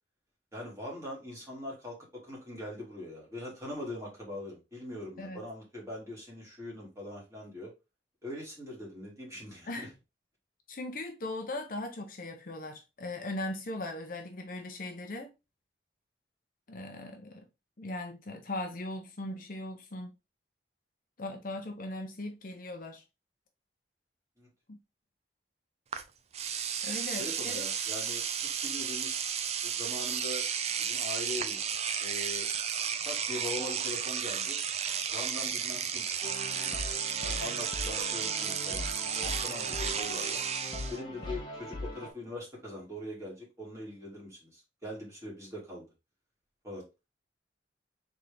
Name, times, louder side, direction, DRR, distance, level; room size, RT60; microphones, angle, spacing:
voice 1, 0.5-7.7 8.2-9.9 24.4-24.5 27.2-29.2 29.6-30.5 30.8-31.7 32.0-32.5 33.0-34.6 35.1-36.0 36.6-36.7 37.4-40.4 40.9-45.8 46.6-46.8, left 1 dB, 15° right, 2.3 m, -42 dB
voice 2, 10.7-15.3 16.7-17.5 17.8-20.1 21.2-23.0 24.7-24.8 26.8-27.5, left 2 dB, 50° left, 0.8 m, -39 dB
Engine / Domestic sounds home sounds, 25.9-26.0 26.3-41.0, right 7 dB, 35° right, 0.4 m, -33 dB
sound 1, 36.2-42.1, left 1 dB, 25° left, 1.1 m, -40 dB
3.9 x 3.6 x 3.3 m
head